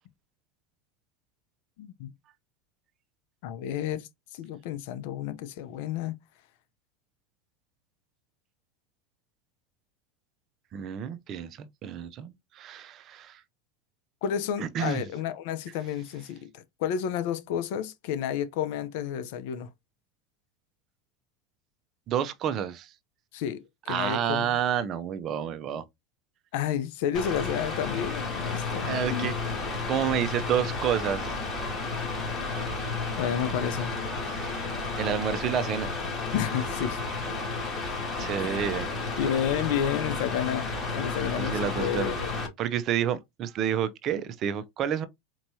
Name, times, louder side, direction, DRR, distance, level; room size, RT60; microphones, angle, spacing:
voice 1, 1.8-2.1 3.4-6.2 14.2-19.7 23.3-24.6 26.5-29.3 33.2-33.9 36.3-37.0 38.4-38.6 39.2-42.3, left 9 dB, 65° left, 0.6 m, -31 dB
voice 2, 10.7-13.4 14.6-15.1 22.1-22.9 23.9-25.8 28.9-29.4 29.7-31.3 34.3-34.6 35.0-35.9 38.2-38.9 41.4-42.1 42.6-45.1, right 9 dB, 45° right, 0.6 m, -29 dB
Mechanical fan, 27.1-42.5, left 3 dB, 25° left, 2.1 m, -32 dB
4.5 x 2.8 x 2.8 m
hypercardioid pair, 105°, 0 cm